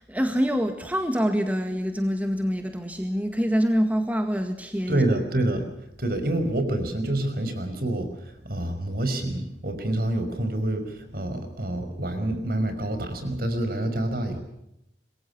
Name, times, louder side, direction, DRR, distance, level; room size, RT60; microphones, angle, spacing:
voice 1, 0.0-5.1, equal, 10° right, 6 dB, 1.8 m, -25 dB
voice 2, 4.9-5.7 6.0-14.4, right 1 dB, 55° right, 8 dB, 5.5 m, -27 dB
27.0 x 22.5 x 6.1 m, 0.82 s
head